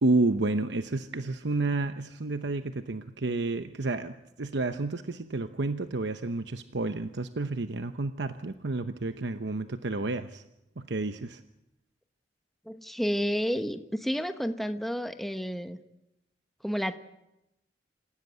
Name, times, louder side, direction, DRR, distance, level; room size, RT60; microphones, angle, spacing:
voice 1, 0.0-10.4 10.8-11.4, right 2 dB, 75° right, 9 dB, 0.9 m, -30 dB
voice 2, 12.7-15.8 16.6-17.0, equal, ahead, 8 dB, 1.0 m, -30 dB
27.0 x 16.5 x 8.2 m, 0.89 s
head